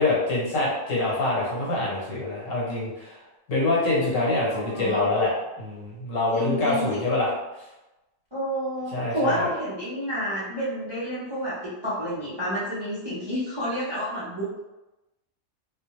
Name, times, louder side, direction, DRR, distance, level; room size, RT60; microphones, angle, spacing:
voice 1, 0.0-3.2 3.5-5.3 5.6-7.3 8.9-9.5, left 2 dB, 75° left, -4 dB, 1.3 m, -25 dB
voice 2, 4.5-5.1 6.3-6.9 8.3-14.6, equal, 30° right, -9 dB, 0.5 m, -30 dB
2.4 x 2.2 x 2.9 m, 1.0 s
omnidirectional pair, 1.3 m